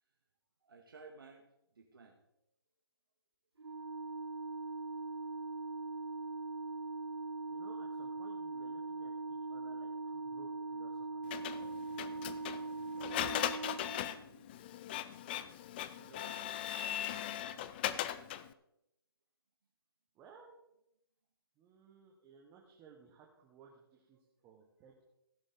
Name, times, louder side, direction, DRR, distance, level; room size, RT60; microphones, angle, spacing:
voice 1, 0.6-1.4 1.8-2.2 16.0-17.3, right 4 dB, 60° right, 2 dB, 1.9 m, -57 dB
Organ, 3.6-14.4, right 3 dB, 80° right, 0.6 m, -41 dB
voice 2, 7.5-9.1 9.5-11.2 20.1-20.6 21.6-25.0, right 6 dB, 15° right, 0 dB, 1.5 m, -59 dB
Printer, 11.3-18.5, left 11 dB, 25° left, 0.5 m, -39 dB
16.0 x 9.7 x 3.9 m, 0.82 s
figure-of-eight pair, 140°, 13 cm